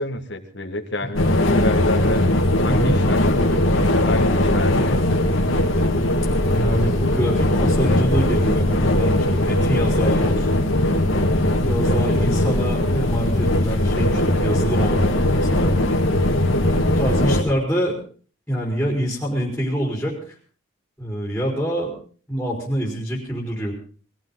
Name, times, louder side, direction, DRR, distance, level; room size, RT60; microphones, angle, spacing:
voice 1, 0.0-2.2 2.6-5.2, left 1 dB, 60° left, 7 dB, 1.8 m, -29 dB
sound 1, 1.2-17.4, left 1 dB, 85° left, 2.0 m, -19 dB
voice 2, 2.7-3.0 6.5-10.6 11.6-15.8 16.9-18.0 18.5-20.2 21.0-22.0 22.3-23.7, equal, 5° left, -3 dB, 4.4 m, -25 dB
21.0 x 15.0 x 4.0 m, 0.42 s
head